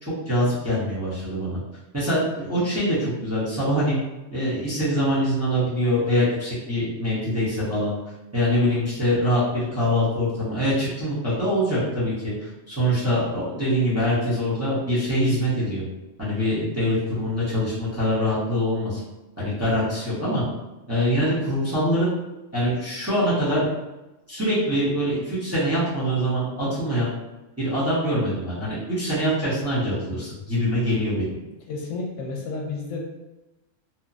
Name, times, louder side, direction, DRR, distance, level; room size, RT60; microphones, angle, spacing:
voice 1, 0.0-1.6 1.9-3.9 4.3-7.9 8.3-15.8 16.2-19.0 19.4-20.4 20.9-22.1 22.5-23.6 24.3-27.1 27.6-31.3, equal, 15° right, -11 dB, 0.7 m, -24 dB
voice 2, 31.7-33.0, left 3 dB, 80° left, 0 dB, 0.9 m, -31 dB
2.9 x 2.1 x 2.5 m, 1.1 s
omnidirectional pair, 1.3 m